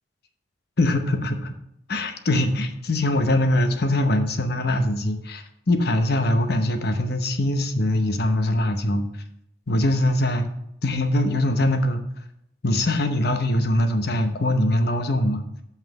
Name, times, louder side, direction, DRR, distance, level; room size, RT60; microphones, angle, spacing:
voice 1, 0.8-1.6 1.9-9.0 9.7-10.4 10.8-12.0 12.6-15.4, left 1 dB, 60° left, 7 dB, 0.8 m, -22 dB
5.8 x 5.5 x 6.8 m, 0.78 s
head